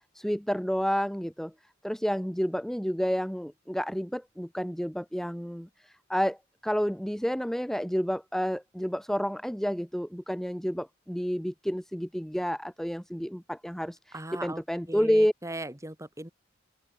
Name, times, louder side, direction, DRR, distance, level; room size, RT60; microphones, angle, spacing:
voice 1, 0.1-1.5 1.8-6.4 6.6-15.3, equal, ahead, 1.6 m, -30 dB
voice 2, 14.1-16.3, right 1 dB, 15° right, 4.2 m, -39 dB
open air
head